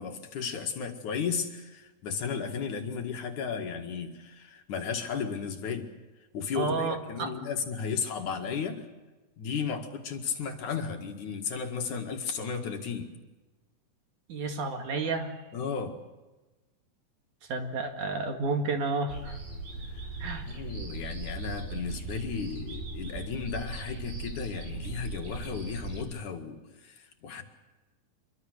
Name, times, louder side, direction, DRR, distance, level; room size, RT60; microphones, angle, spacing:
voice 1, 0.0-5.9 6.3-8.8 9.4-13.1 15.5-16.0 19.8-20.1 20.5-27.4, left 6 dB, 60° left, 4 dB, 3.2 m, -34 dB
voice 2, 6.6-7.3 14.3-15.3 17.5-19.4 20.2-20.4, right 3 dB, 60° right, 4 dB, 3.3 m, -31 dB
sound 1, 19.1-26.0, right 3 dB, 85° right, 8.3 m, -38 dB
25.5 x 24.0 x 6.6 m, 1.2 s
omnidirectional pair, 4.1 m